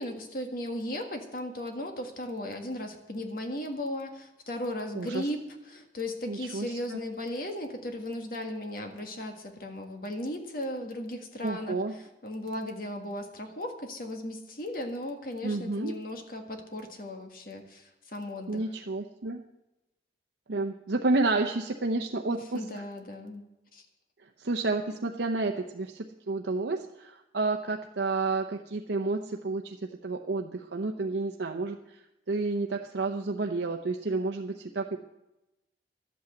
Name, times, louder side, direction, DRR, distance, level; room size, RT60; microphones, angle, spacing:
voice 1, 0.0-18.6 22.5-23.4 23.7-23.8, left 1 dB, 50° left, 4 dB, 1.7 m, -36 dB
voice 2, 4.9-5.3 6.3-7.0 11.4-11.9 15.4-15.9 18.5-19.4 20.5-22.6 24.4-32.0 32.3-35.0, right 3 dB, 75° right, 3 dB, 0.7 m, -30 dB
12.5 x 8.6 x 7.8 m, 0.96 s
head